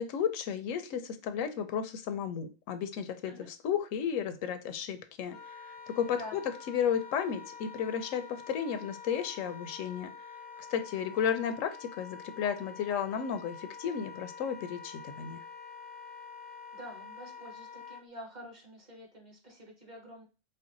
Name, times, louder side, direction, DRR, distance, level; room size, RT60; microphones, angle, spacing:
voice 1, 0.0-6.4 6.7-10.1 10.7-15.4, left 8 dB, 80° left, 10 dB, 1.0 m, -33 dB
Wind instrument woodwind instrument, 5.3-18.0, left 6 dB, 60° left, 0.6 m, -47 dB
voice 2, 16.7-20.2, equal, 35° right, 0 dB, 1.2 m, -47 dB
4.6 x 2.2 x 3.7 m, 0.31 s
omnidirectional pair, 1.3 m